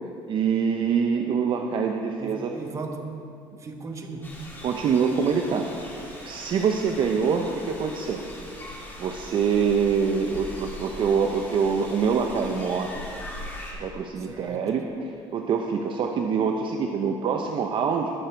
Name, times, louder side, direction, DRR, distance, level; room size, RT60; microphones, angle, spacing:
voice 1, 0.3-2.5 4.6-8.3 9.0-13.0 13.8-18.1, right 6 dB, 50° right, 3 dB, 0.7 m, -25 dB
voice 2, 2.2-3.0 3.6-4.3 14.2-14.7, right 3 dB, 30° right, 3 dB, 1.3 m, -37 dB
sound 1, 4.2-13.7, left 1 dB, 20° left, 2.8 m, -41 dB
19.5 x 6.7 x 4.5 m, 2.5 s
cardioid pair, 125°, 11 cm